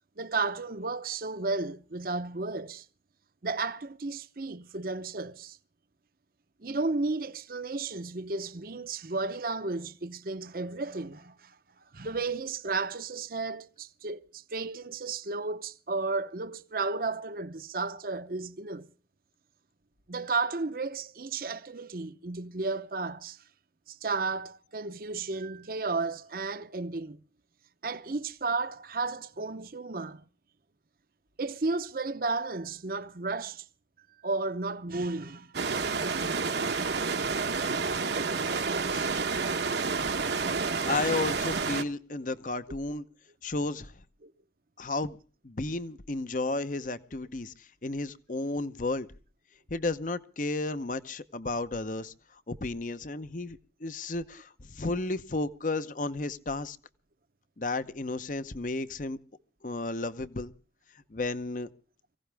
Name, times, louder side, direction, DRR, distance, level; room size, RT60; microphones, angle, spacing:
voice 1, 0.2-2.9 3.4-5.6 6.6-11.6 11.9-18.9 20.1-23.4 23.9-27.2 27.8-30.3 31.4-33.7 34.2-35.5 44.2-44.3, right 3 dB, 50° right, 0.8 m, -33 dB
sound 1, 35.5-41.8, right 4 dB, 70° right, 1.0 m, -29 dB
voice 2, 40.8-43.0 43.4-43.9 44.8-45.2 45.4-49.1 49.7-56.8 57.6-59.2 59.6-60.5 61.1-61.7, left 2 dB, 45° left, 0.8 m, -33 dB
23.5 x 16.0 x 3.4 m
head